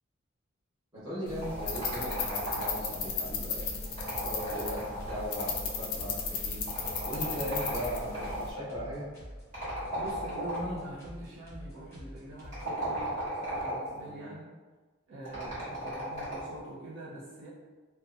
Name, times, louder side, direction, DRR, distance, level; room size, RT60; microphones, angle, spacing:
voice 1, 0.9-3.8 4.0-5.5 5.7-6.6 7.0-9.1 14.0-14.3, equal, 20° right, -11 dB, 1.0 m, -38 dB
sound 1, 1.3-8.5, left 5 dB, 75° left, 0.4 m, -36 dB
sound 2, 1.4-3.0 3.9-5.7 6.7-8.5 9.5-10.9 12.4-14.0 15.3-16.6, right 1 dB, 35° right, 1.4 m, -36 dB
sound 3, 3.6-12.6, equal, 10° left, 0.9 m, -47 dB
voice 2, 9.9-13.1 13.4-14.5 15.1-17.5, right 1 dB, 60° right, -9 dB, 0.7 m, -43 dB
2.7 x 2.2 x 2.5 m, 1.3 s
head